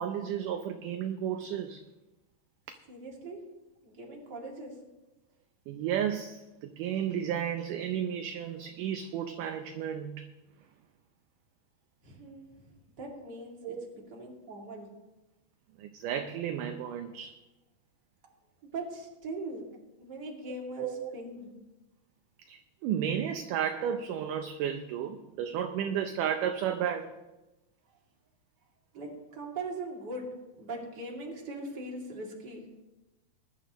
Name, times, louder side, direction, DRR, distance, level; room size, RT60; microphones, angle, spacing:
voice 1, 0.0-1.8 5.7-10.3 13.6-13.9 15.8-17.4 20.8-21.2 22.5-27.1, right 9 dB, 75° right, 6 dB, 2.0 m, -33 dB
voice 2, 2.9-3.4 3.8-4.7 12.0-12.5 13.0-13.8 14.1-14.9 18.7-19.6 20.0-21.5 28.9-30.3 30.6-32.6, right 2 dB, 30° right, -2 dB, 2.5 m, -40 dB
20.5 x 11.0 x 3.0 m, 1.0 s
omnidirectional pair, 4.3 m